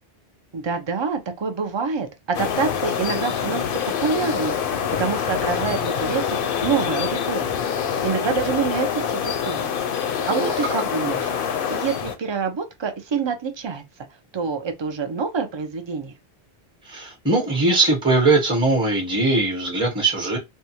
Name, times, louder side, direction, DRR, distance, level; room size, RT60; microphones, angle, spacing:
voice 1, 0.5-4.5 5.0-6.2 6.6-7.5 8.0-9.7 10.3-11.3 11.7-13.8 14.3-16.1, right 5 dB, 40° right, 0.4 m, -26 dB
sound 1, 2.3-12.2, left 8 dB, 65° left, 0.7 m, -25 dB
voice 2, 16.8-20.4, right 2 dB, 5° right, 0.8 m, -20 dB
2.6 x 2.3 x 2.8 m
omnidirectional pair, 1.1 m